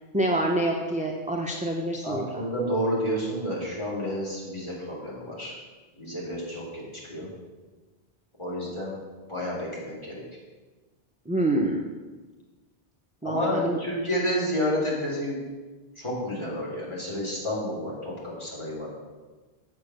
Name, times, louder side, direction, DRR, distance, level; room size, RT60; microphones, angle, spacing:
voice 1, 0.1-2.4 11.3-11.8 13.2-13.8, right 1 dB, 10° right, 0 dB, 0.6 m, -26 dB
voice 2, 2.0-5.6 6.0-6.8 7.1-7.3 8.4-8.9 9.3-10.2 13.2-15.4 16.0-18.9, equal, 25° left, -7 dB, 3.5 m, -30 dB
7.4 x 6.9 x 6.4 m, 1.3 s
omnidirectional pair, 1.1 m